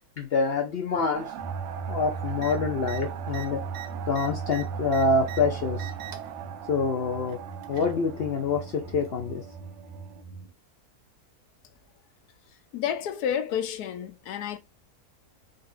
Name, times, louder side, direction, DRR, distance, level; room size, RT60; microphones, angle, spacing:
voice 1, 0.2-1.3 1.9-3.6 4.1-5.9 6.7-7.4 7.7-9.4, left 4 dB, 60° left, 0.7 m, -26 dB
sound 1, 1.1-10.2, right 10 dB, 65° right, 0.7 m, -41 dB
sound 2, 1.4-10.5, right 5 dB, 35° left, 1.3 m, -38 dB
sound 3, 2.4-2.5 2.8-3.0 3.3-5.4 5.7-6.3 7.3-8.0 9.0-9.1, right 11 dB, 85° right, 1.3 m, -42 dB
voice 2, 12.7-14.6, left 9 dB, 85° left, 1.2 m, -30 dB
3.9 x 2.7 x 2.4 m
omnidirectional pair, 1.6 m